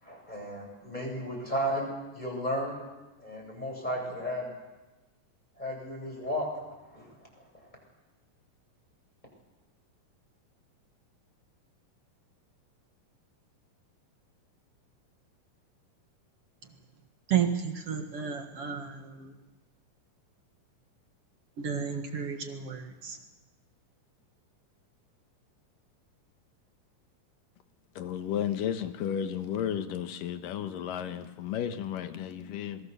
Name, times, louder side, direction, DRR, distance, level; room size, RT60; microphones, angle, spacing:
voice 1, 0.0-1.9 2.1-2.8 3.2-4.5 5.6-6.5 6.9-7.1 7.6-7.7, equal, 10° left, 7.8 m, -34 dB
voice 2, 17.3-19.3 21.6-23.2, right 8 dB, 50° right, 2.2 m, -32 dB
voice 3, 28.0-32.8, left 9 dB, 75° left, 2.8 m, -33 dB
27.5 x 21.5 x 7.0 m
omnidirectional pair, 4.1 m